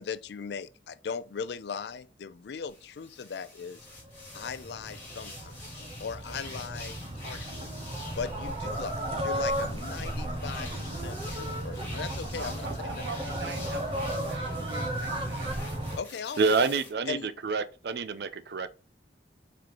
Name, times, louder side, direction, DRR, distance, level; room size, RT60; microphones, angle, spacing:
voice 1, 0.0-3.8 4.3-5.5 6.0-7.7 8.2-12.7 12.9-13.0 16.0-16.4 17.1-17.3, left 6 dB, 65° left, 0.4 m, -38 dB
sound 1, 2.7-16.9, left 2 dB, 10° left, 2.1 m, -47 dB
sound 2, 3.9-16.0, right 1 dB, 30° right, 0.8 m, -34 dB
voice 2, 12.3-15.5, right 4 dB, 80° right, 1.0 m, -42 dB
voice 3, 16.4-18.7, right 4 dB, 60° right, 0.4 m, -27 dB
4.7 x 3.7 x 3.0 m
head